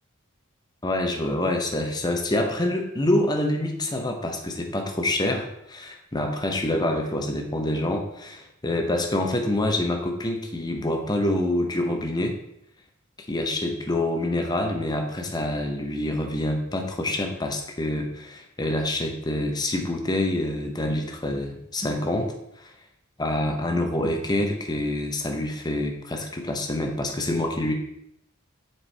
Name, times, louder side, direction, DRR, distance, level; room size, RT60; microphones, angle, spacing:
voice 1, 0.8-12.4 13.3-22.7 23.2-27.7, left 1 dB, 20° left, 3 dB, 0.7 m, -26 dB
7.1 x 4.5 x 3.3 m, 0.77 s
head